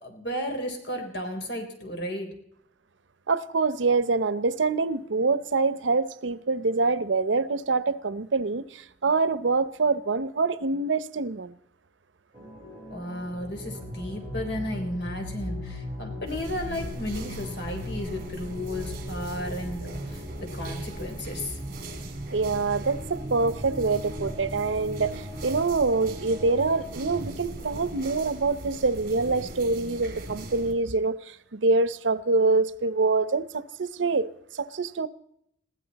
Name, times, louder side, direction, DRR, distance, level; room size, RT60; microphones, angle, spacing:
voice 1, 0.0-2.3 12.9-20.2 20.5-21.6, left 1 dB, 65° left, 3.8 m, -34 dB
voice 2, 3.3-11.5 22.3-35.1, right 3 dB, 90° right, 0.7 m, -25 dB
sound 1, 12.3-27.2, equal, 25° right, 4.2 m, -38 dB
sound 2, 16.3-30.7, right 1 dB, 55° right, 2.9 m, -41 dB
21.5 x 15.5 x 4.1 m
head